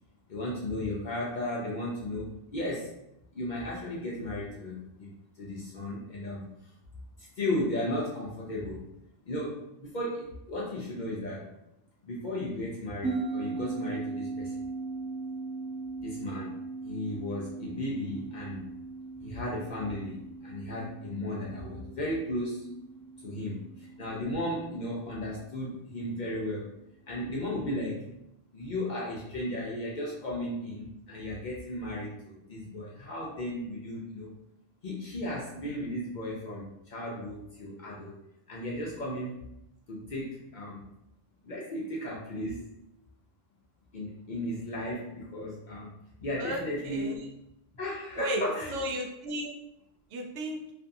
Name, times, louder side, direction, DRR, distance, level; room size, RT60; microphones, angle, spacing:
voice 1, 0.3-2.9 3.3-6.7 7.2-8.9 9.2-11.5 12.0-14.5 16.0-16.6 16.8-18.6 19.2-22.7 23.2-26.7 27.1-28.0 28.5-34.3 34.8-38.2 38.5-39.4 39.9-40.8 41.4-42.6 43.9-45.9 46.2-47.2 47.7-48.8, left 1 dB, 55° left, -4 dB, 0.5 m, -35 dB
sound 1, 13.0-25.8, right 3 dB, 25° right, 0.5 m, -39 dB
voice 2, 46.4-47.2 48.2-48.4 48.7-49.5 50.1-50.6, right 1 dB, 80° right, 1 dB, 0.9 m, -34 dB
2.6 x 2.4 x 2.6 m, 0.82 s
omnidirectional pair, 1.2 m